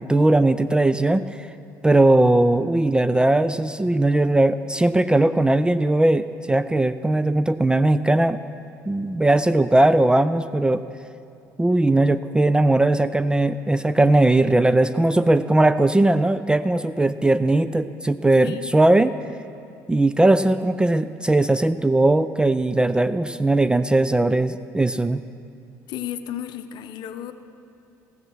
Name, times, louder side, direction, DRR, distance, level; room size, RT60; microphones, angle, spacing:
voice 1, 0.0-1.5 1.8-8.4 8.9-10.8 11.6-19.1 19.9-25.2, right 2 dB, 10° right, 13 dB, 0.3 m, -19 dB
voice 2, 18.4-18.7 25.9-27.3, left 11 dB, 50° left, 10 dB, 0.6 m, -33 dB
16.5 x 7.3 x 6.1 m, 2.7 s
figure-of-eight pair, 55°, 9 cm